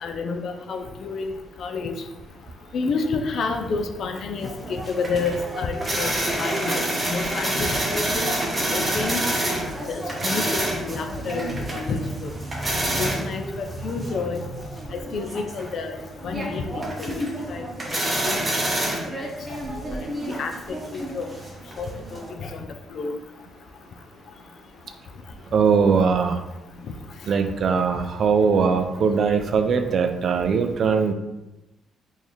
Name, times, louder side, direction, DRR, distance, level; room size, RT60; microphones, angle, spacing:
voice 1, 0.0-1.3 1.6-1.9 2.7-4.5 5.0-6.1 6.4-6.7 7.0-8.3 8.6-9.2 9.9-12.3 13.0-14.4 14.9-15.9 16.2-17.2 17.5-17.6 18.2-18.4 19.1-19.2 20.3-20.5 20.9-21.3 21.8-21.9 22.9-23.1, left 4 dB, 55° left, 5 dB, 0.4 m, -29 dB
sound 1, 4.4-22.3, right 1 dB, 20° right, 0.7 m, -28 dB
voice 2, 25.5-26.4 27.3-31.1, right 5 dB, 50° right, 7 dB, 0.3 m, -20 dB
3.8 x 2.6 x 3.1 m, 1.0 s
cardioid pair, 130°, 0 cm